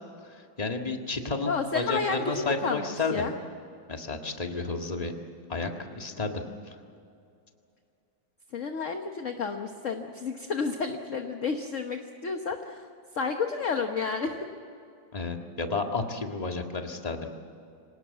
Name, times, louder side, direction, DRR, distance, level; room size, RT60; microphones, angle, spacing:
voice 1, 0.2-3.3 3.9-5.1 5.5-6.8 15.1-17.3, left 3 dB, 20° left, 3 dB, 1.8 m, -32 dB
voice 2, 1.4-3.3 8.5-12.9 13.1-14.3, left 5 dB, 45° left, 5 dB, 1.3 m, -31 dB
26.0 x 18.5 x 8.2 m, 2.6 s
omnidirectional pair, 2.1 m